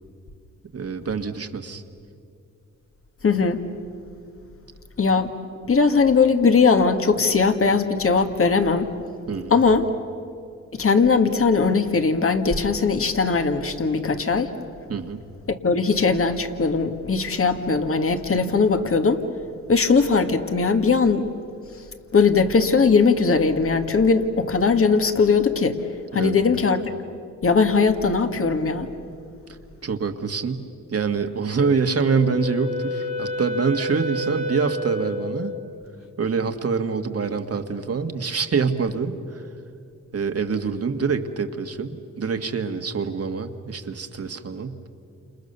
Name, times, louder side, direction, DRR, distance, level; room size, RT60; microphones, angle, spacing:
voice 1, 0.7-1.8 9.3-9.5 14.9-15.2 26.1-26.4 29.8-35.6 36.2-39.4 40.1-44.8, right 5 dB, 50° right, 7 dB, 1.8 m, -25 dB
voice 2, 3.2-3.6 5.0-5.3 5.7-8.9 9.5-9.9 10.7-14.5 15.5-19.2 19.7-21.3 22.1-25.8 26.1-26.9 27.4-28.9, left 4 dB, 45° left, 7 dB, 2.0 m, -19 dB
Wind instrument woodwind instrument, 31.6-35.6, left 1 dB, 85° left, 1.9 m, -30 dB
29.5 x 28.0 x 6.9 m, 2.5 s
cardioid pair, 65°, 31 cm